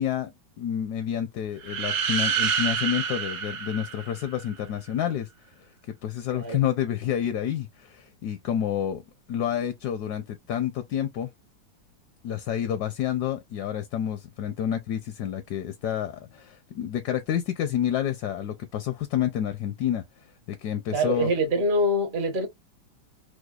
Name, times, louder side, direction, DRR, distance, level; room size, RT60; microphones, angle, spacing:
voice 1, 0.0-5.3 5.9-9.0 9.3-11.3 12.2-20.0 20.5-21.3, left 10 dB, 75° left, 0.9 m, -29 dB
sound 1, 1.6-4.5, right 7 dB, 70° right, 1.5 m, -28 dB
voice 2, 20.9-22.5, equal, 45° right, 0.6 m, -24 dB
5.0 x 2.0 x 2.3 m
omnidirectional pair, 2.1 m